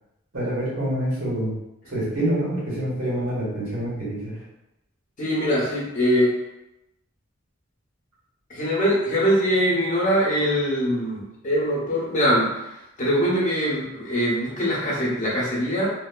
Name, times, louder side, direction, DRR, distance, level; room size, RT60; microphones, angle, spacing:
voice 1, 0.3-1.5 1.9-4.3, right 1 dB, 85° right, -7 dB, 1.5 m, -26 dB
voice 2, 5.2-6.3 8.5-12.7 13.0-15.9, equal, 40° left, -5 dB, 0.8 m, -22 dB
2.8 x 2.7 x 2.3 m, 0.91 s
head